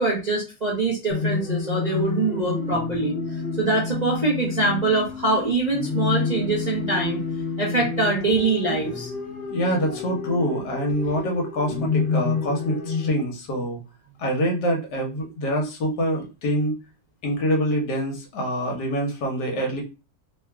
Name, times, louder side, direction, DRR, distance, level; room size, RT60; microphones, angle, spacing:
voice 1, 0.0-3.2 3.6-7.2 7.6-9.1, right 3 dB, 35° right, -5 dB, 0.6 m, -24 dB
sound 1, 1.1-13.1, left 5 dB, 40° left, 1.0 m, -29 dB
voice 2, 9.5-13.8 14.2-16.8 17.2-19.8, equal, 65° left, 1 dB, 1.5 m, -25 dB
3.5 x 2.3 x 3.4 m, 0.30 s
omnidirectional pair, 2.0 m